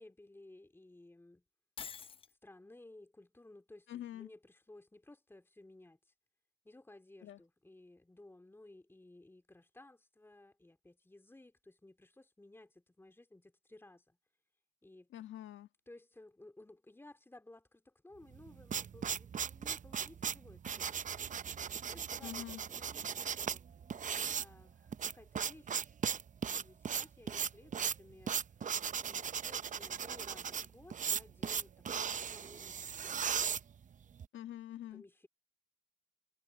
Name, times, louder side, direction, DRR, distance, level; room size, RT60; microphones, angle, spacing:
voice 1, 0.0-1.4 2.4-6.1 6.6-14.2 14.8-15.1 15.9-21.1 21.9-23.6 24.4-25.9 26.5-28.4 29.0-33.3 34.9-35.3, left 2 dB, 10° left, 3.1 m, -58 dB
Shatter, 1.8-2.3, left 6 dB, 30° left, 0.4 m, -46 dB
voice 2, 3.9-4.3 7.2-7.4 15.1-15.7 22.2-22.6 34.3-35.0, left 12 dB, 75° left, 1.5 m, -45 dB
sound 1, 18.3-34.3, right 7 dB, 40° right, 0.7 m, -37 dB
cardioid pair, 90°, 20 cm